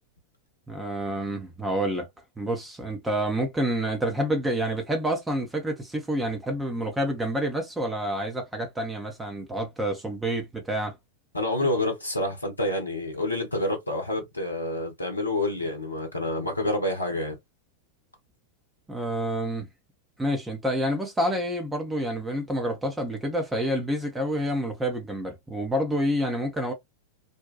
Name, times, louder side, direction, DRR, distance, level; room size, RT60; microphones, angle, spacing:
voice 1, 0.7-2.1 2.4-10.9 18.9-19.7 20.2-26.7, equal, 10° right, 0.7 m, -28 dB
voice 2, 11.3-17.4, left 1 dB, 80° left, 0.7 m, -28 dB
2.6 x 2.2 x 2.2 m
figure-of-eight pair, 90°, 0 cm